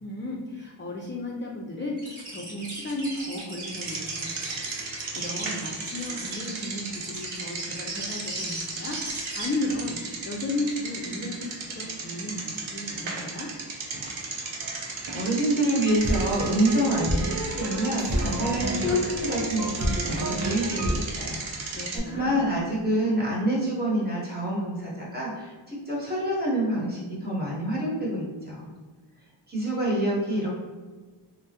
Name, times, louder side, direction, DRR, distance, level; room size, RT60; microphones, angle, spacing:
voice 1, 0.0-13.5 21.7-22.5, left 1 dB, 30° left, -3 dB, 0.3 m, -34 dB
sound 1, 2.0-9.5, right 2 dB, 60° right, 1.0 m, -38 dB
Bicycle, 3.6-22.0, right 3 dB, 85° right, 0.6 m, -35 dB
voice 2, 15.1-28.7 29.5-30.5, right 1 dB, 20° right, -6 dB, 1.1 m, -27 dB
sound 2, 15.8-22.2, right 1 dB, 40° right, 0.5 m, -30 dB
3.3 x 2.1 x 2.8 m, 1.4 s
wide cardioid pair, 75°, 46 cm